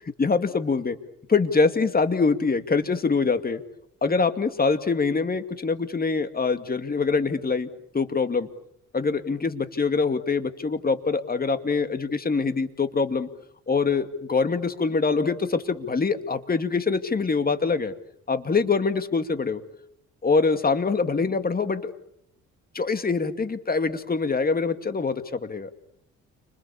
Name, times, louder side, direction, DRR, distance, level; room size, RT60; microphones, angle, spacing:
voice 1, 0.2-1.0 1.3-3.6 4.0-7.7 7.9-8.5 8.9-13.3 13.7-17.9 18.3-19.6 20.2-21.9 22.7-25.7, left 4 dB, 30° left, 9 dB, 2.4 m, -24 dB
30.0 x 26.5 x 7.2 m, 0.74 s
cardioid pair, 90°, 30 cm